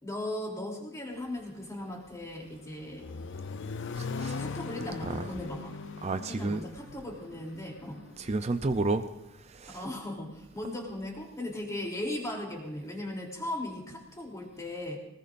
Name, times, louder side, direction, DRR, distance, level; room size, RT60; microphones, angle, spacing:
voice 1, 0.0-3.1 4.4-5.8 6.3-8.0 9.7-15.0, left 1 dB, 15° left, 3.2 m, -37 dB
Accelerating revving vroom, 2.4-8.4, left 4 dB, 60° left, 0.5 m, -40 dB
voice 2, 4.0-4.4 5.1-5.2 6.0-6.6 8.2-9.0 9.5-9.8, right 3 dB, 30° right, 0.5 m, -30 dB
22.5 x 19.5 x 2.6 m
head